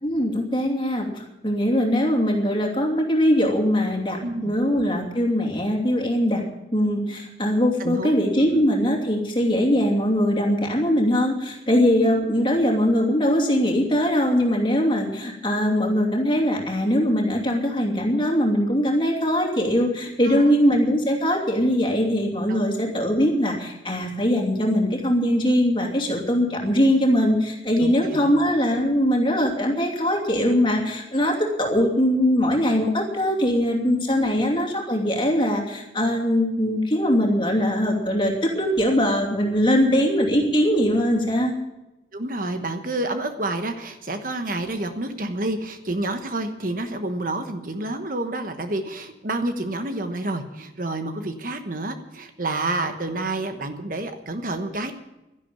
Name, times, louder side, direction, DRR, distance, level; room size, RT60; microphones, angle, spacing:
voice 1, 0.0-6.4 6.7-41.5, equal, 25° left, 1 dB, 2.8 m, -21 dB
voice 2, 4.2-4.5 7.8-8.2 8.5-8.6 11.7-12.3 20.2-20.5 22.5-22.6 27.8-28.3 33.8-34.4 39.8-40.1 42.1-54.9, right 2 dB, 45° right, 7 dB, 1.2 m, -29 dB
12.0 x 11.0 x 8.6 m, 0.96 s
head